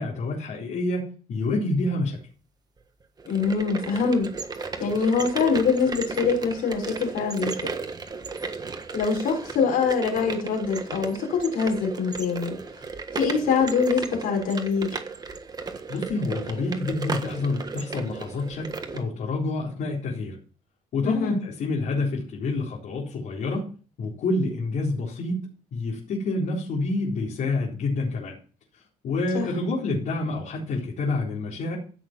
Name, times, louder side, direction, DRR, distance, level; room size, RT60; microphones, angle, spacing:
voice 1, 0.0-2.2 15.9-20.4 20.9-23.7 24.0-25.4 25.7-28.4 28.7-31.8, left 2 dB, 70° left, -3 dB, 4.1 m, -28 dB
voice 2, 3.2-4.3 4.8-7.7 8.9-12.6 13.1-15.0 21.0-21.4 29.3-29.5, left 5 dB, 90° left, 1 dB, 5.9 m, -24 dB
Grannie's old coffee bean mill, 3.2-19.0, right 4 dB, 30° right, 1.5 m, -35 dB
15.5 x 6.6 x 6.0 m, 0.38 s
cardioid pair, 125°, 14 cm